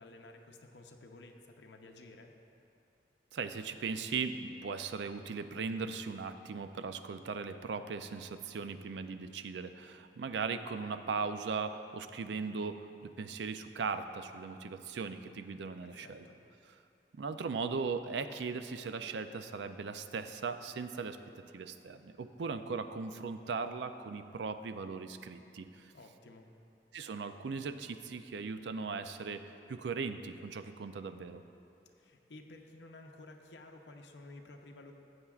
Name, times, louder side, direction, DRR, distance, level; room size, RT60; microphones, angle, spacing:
voice 1, 0.0-2.3 15.8-16.4 25.9-26.5 32.0-34.9, left 2 dB, 80° left, 3 dB, 0.6 m, -53 dB
voice 2, 3.3-16.2 17.2-21.2 21.5-25.9 26.9-31.4, right 5 dB, 75° right, 9 dB, 0.4 m, -38 dB
14.0 x 7.9 x 2.4 m, 2.7 s
head